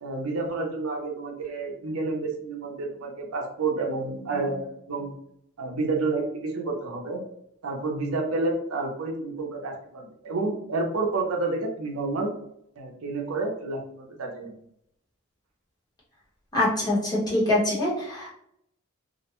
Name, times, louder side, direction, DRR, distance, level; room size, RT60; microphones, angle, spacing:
voice 1, 0.0-5.1 5.6-7.2 7.6-12.3 12.8-14.5, right 3 dB, 70° right, 1 dB, 0.6 m, -29 dB
voice 2, 16.5-18.3, left 1 dB, 20° left, -6 dB, 0.9 m, -24 dB
2.5 x 2.1 x 2.9 m, 0.74 s
head